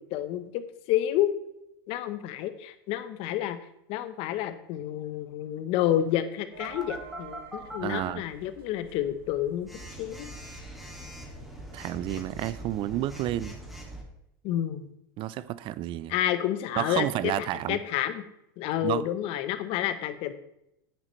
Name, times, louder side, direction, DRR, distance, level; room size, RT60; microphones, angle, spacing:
voice 1, 0.0-1.3 1.9-3.6 3.9-9.7 10.0-10.3 14.4-14.9 16.1-18.2 18.6-20.3, left 12 dB, 55° left, 1.0 m, -29 dB
sound 1, 6.5-13.9, right 5 dB, 85° right, 2.3 m, -52 dB
Telephone, 6.6-8.0 9.7-14.0, right 1 dB, ahead, 2.4 m, -42 dB
voice 2, 7.8-8.2 11.7-13.5 15.2-16.1 16.8-17.8 18.8-19.1, right 14 dB, 45° right, 0.5 m, -30 dB
10.0 x 8.9 x 3.2 m
hypercardioid pair, 100°, 12 cm